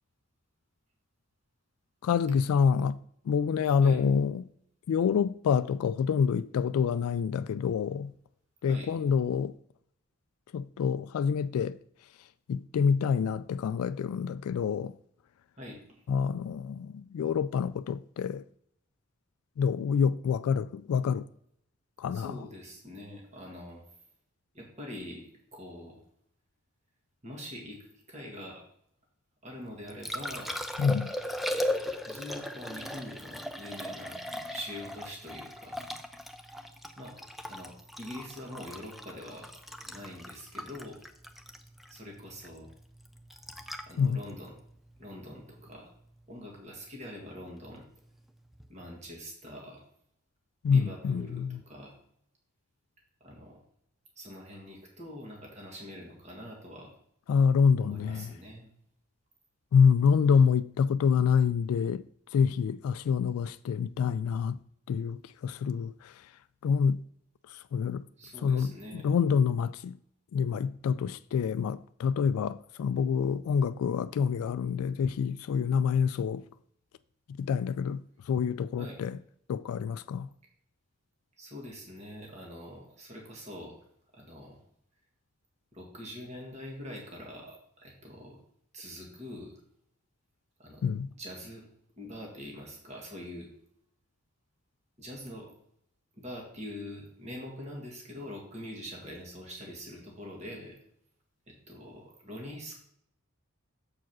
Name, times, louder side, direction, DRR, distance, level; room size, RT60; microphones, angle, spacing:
voice 1, 2.0-3.0 3.3-4.4 4.9-8.1 8.6-9.5 10.5-11.8 12.5-14.9 16.1-18.4 19.6-21.3 22.0-22.3 30.8-31.1 44.0-44.2 50.6-51.6 57.3-58.3 59.7-62.0 62.3-64.6 64.9-66.1 66.6-67.0 67.5-68.0 68.4-68.7 69.0-70.0 70.3-76.4 77.4-79.2 79.5-80.3 90.8-91.1, left 6 dB, 90° left, 0.3 m, -27 dB
voice 2, 15.6-16.0 22.1-23.8 24.5-26.0 27.2-28.6 29.4-30.7 32.0-34.2 34.5-35.8 37.0-39.5 39.8-41.0 41.9-42.7 43.9-44.5 45.0-45.9 46.3-47.9 48.7-49.8 50.7-51.9 53.2-53.6 54.2-56.9 57.8-58.7 60.2-60.4 68.2-69.1 78.8-79.0 81.4-83.8 84.1-84.6 85.7-88.4 88.7-89.5 90.6-90.8 91.2-91.6 92.0-93.5 95.0-95.5 96.2-100.8 101.5-102.8, left 1 dB, 30° right, 1.9 m, -44 dB
Liquid, 29.6-45.7 48.5-48.7, left 1 dB, ahead, 0.4 m, -38 dB
7.4 x 4.7 x 6.1 m
head